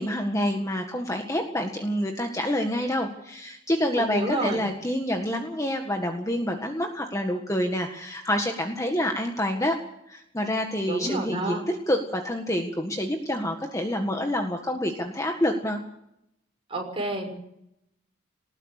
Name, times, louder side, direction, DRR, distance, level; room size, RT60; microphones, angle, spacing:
voice 1, 0.0-15.8, equal, 15° left, 3 dB, 1.7 m, -27 dB
voice 2, 4.0-4.6 10.8-11.6 16.7-17.3, right 1 dB, 25° right, 2 dB, 6.0 m, -30 dB
20.0 x 19.5 x 6.7 m, 0.79 s
head